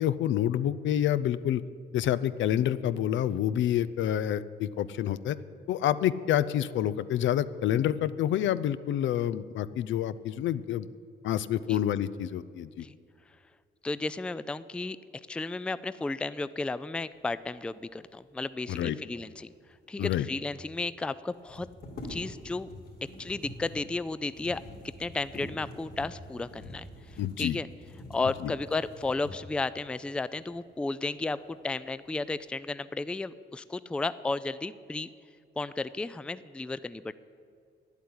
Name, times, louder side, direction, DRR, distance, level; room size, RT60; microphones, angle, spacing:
voice 1, 0.0-1.6 1.9-5.4 5.7-10.9 11.2-12.9 18.7-19.0 20.0-20.3 27.2-27.6 28.4-28.5, left 11 dB, 70° left, 15 dB, 0.5 m, -28 dB
voice 2, 13.8-15.0 15.3-19.5 19.9-21.7 22.1-22.7 23.2-24.6 25.0-27.7 28.1-35.1 35.6-37.1, left 3 dB, 5° left, 15 dB, 0.3 m, -33 dB
sound 1, 19.8-19.9 20.1-20.2 21.3-29.7 30.3-30.5 30.9-31.5 31.9-32.4, left 1 dB, 50° left, 2.7 m, -46 dB
10.5 x 8.2 x 9.6 m, 2.3 s
cardioid pair, 90°, 20 cm